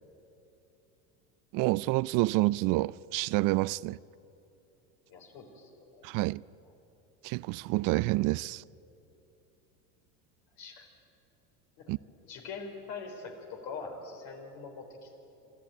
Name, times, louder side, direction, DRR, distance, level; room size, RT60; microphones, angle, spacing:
voice 1, 1.5-4.0 6.0-6.4 7.2-8.6 11.9-12.0, right 20 dB, 50° right, 0.5 m, -28 dB
voice 2, 5.1-6.1 10.6-10.9 11.8-11.9 12.3-15.2, left 4 dB, 60° left, 4.2 m, -43 dB
25.5 x 13.5 x 8.9 m
supercardioid pair, 95°, 42 cm